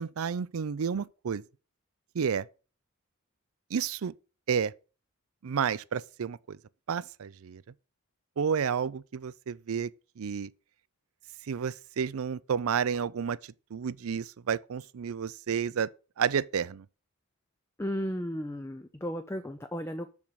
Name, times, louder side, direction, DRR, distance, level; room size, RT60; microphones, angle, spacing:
voice 1, 0.0-1.4 2.1-2.5 3.7-4.1 4.5-4.7 5.4-6.6 6.9-7.6 8.4-9.9 10.2-10.5 11.5-13.4 13.7-15.9 16.2-16.8, right 7 dB, 75° right, 0.4 m, -31 dB
voice 2, 17.8-20.2, equal, 10° left, 0.5 m, -34 dB
7.0 x 6.5 x 6.2 m
head